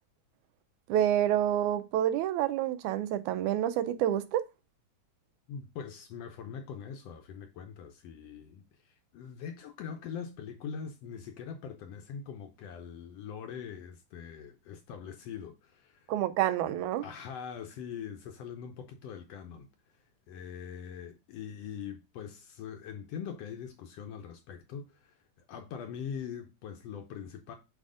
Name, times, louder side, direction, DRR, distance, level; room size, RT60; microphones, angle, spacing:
voice 1, 0.9-4.5 16.1-17.1, right 11 dB, 90° right, 2.1 m, -28 dB
voice 2, 5.5-16.1 17.0-19.7 20.3-25.2 25.5-27.6, left 7 dB, 70° left, 1.6 m, -42 dB
7.6 x 3.4 x 3.7 m
omnidirectional pair, 3.4 m